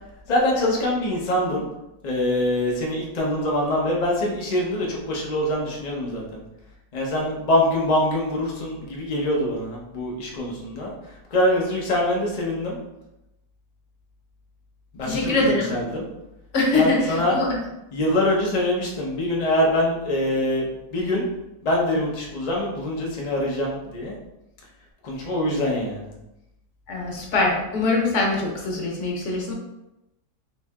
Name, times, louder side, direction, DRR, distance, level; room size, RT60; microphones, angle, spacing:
voice 1, 0.3-1.6 2.0-6.4 6.9-10.9 11.3-12.8 14.9-16.1 16.7-17.4 17.9-21.3 21.6-24.2 25.0-26.1, left 1 dB, 80° left, -2 dB, 0.3 m, -24 dB
voice 2, 15.0-15.7 16.5-17.5 26.9-29.5, left 2 dB, 55° left, -1 dB, 0.9 m, -23 dB
3.2 x 2.7 x 3.4 m, 0.91 s
omnidirectional pair, 1.8 m